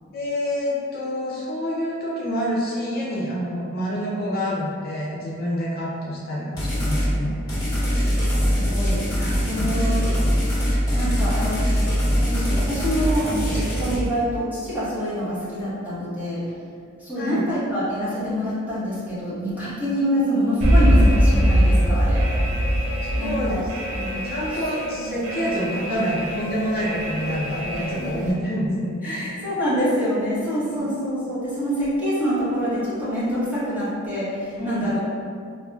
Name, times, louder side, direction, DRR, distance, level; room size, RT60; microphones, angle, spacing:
voice 1, 0.1-7.4 9.2-9.7 10.7-10.8 17.2-17.4 19.6-19.7 23.0-23.6 24.0-29.2 30.7-30.9 34.6-34.9, equal, 45° left, -6 dB, 0.5 m, -27 dB
sound 1, 6.6-7.1 7.5-14.0, equal, 20° left, 1.4 m, -22 dB
voice 2, 8.2-9.0 9.3-10.2 10.7-11.7 12.2-16.4 17.0-22.2 23.2-23.6 24.5-24.6 24.9-25.0 27.7-28.3 29.0-35.0, equal, 10° right, -11 dB, 0.9 m, -26 dB
Alarm, 20.6-28.3, equal, 80° right, 0.6 m, -22 dB
5.3 x 2.0 x 2.3 m, 2.3 s
head